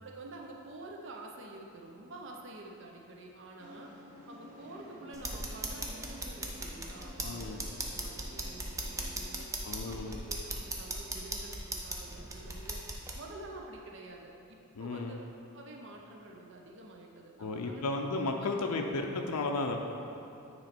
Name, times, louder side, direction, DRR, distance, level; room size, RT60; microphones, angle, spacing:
voice 1, 0.0-4.0 4.3-12.8 13.1-15.3 15.5-17.9, right 2 dB, 55° right, 0 dB, 0.6 m, -48 dB
sound 1, 3.6-11.4, equal, 35° right, 1.1 m, -53 dB
sound 2, 5.1-13.2, right 2 dB, 15° right, 0.4 m, -39 dB
voice 2, 7.2-7.7 9.6-10.2 14.8-15.2 17.4-19.8, left 3 dB, 90° left, 3 dB, 0.5 m, -34 dB
9.0 x 3.1 x 4.3 m, 2.7 s
head